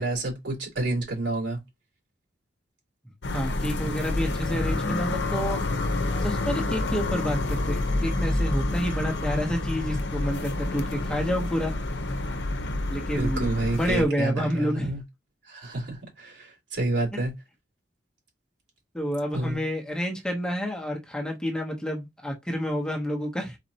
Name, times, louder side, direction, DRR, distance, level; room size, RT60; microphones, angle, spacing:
voice 1, 0.0-1.6 13.1-15.0 15.5-17.3 19.3-19.6, right 2 dB, 85° right, 2.6 m, -29 dB
sound 1, 3.2-14.0, left 2 dB, 70° left, 0.7 m, -28 dB
voice 2, 3.3-5.6 6.2-11.7 12.9-14.9 17.1-17.2 18.9-23.6, equal, 5° left, 0.8 m, -29 dB
4.2 x 4.1 x 2.8 m
head